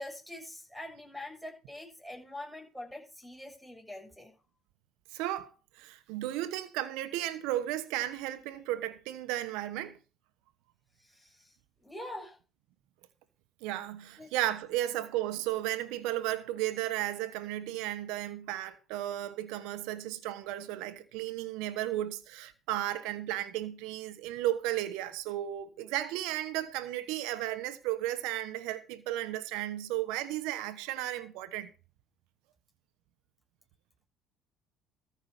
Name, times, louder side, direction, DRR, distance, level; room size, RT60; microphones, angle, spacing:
voice 1, 0.0-4.3 11.0-11.5 11.8-12.4 14.2-14.3, left 1 dB, ahead, 7.3 m, -44 dB
voice 2, 5.1-10.0 13.6-31.7, right 14 dB, 80° right, 1.1 m, -34 dB
14.0 x 5.5 x 6.9 m
supercardioid pair, 75°, 0 cm